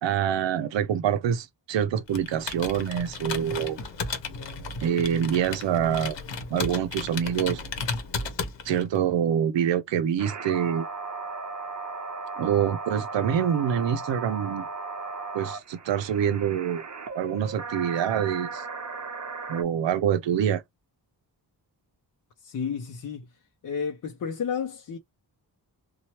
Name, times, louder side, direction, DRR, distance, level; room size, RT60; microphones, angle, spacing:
voice 1, 0.0-3.8 4.8-6.2 6.5-7.6 8.6-10.9 12.4-14.7 15.3-16.8 17.1-18.6 19.5-20.6, right 9 dB, 85° right, 0.5 m, -26 dB
Computer keyboard, 2.1-9.0, left 4 dB, 85° left, 0.8 m, -34 dB
sound 1, 10.2-19.6, right 4 dB, 40° right, 0.6 m, -36 dB
voice 2, 22.4-23.2 23.6-25.0, left 6 dB, 50° left, 0.5 m, -31 dB
2.9 x 2.1 x 2.9 m
wide cardioid pair, 165°, 43 cm